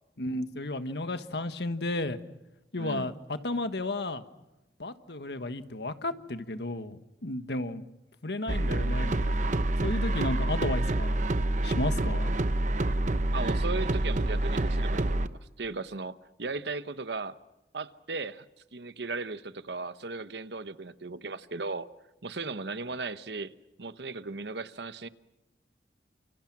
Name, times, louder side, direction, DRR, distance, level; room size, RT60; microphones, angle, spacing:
voice 1, 0.2-2.2 2.7-4.2 4.8-7.8 8.2-11.2 11.6-12.3, left 2 dB, 70° left, 1.5 m, -33 dB
voice 2, 2.8-3.1 13.3-17.4 17.7-18.5 18.7-21.9 22.2-23.5 23.8-25.1, right 3 dB, 75° right, 1.1 m, -36 dB
sound 1, 8.5-15.3, right 1 dB, 45° right, 0.9 m, -27 dB
30.0 x 28.0 x 6.1 m
head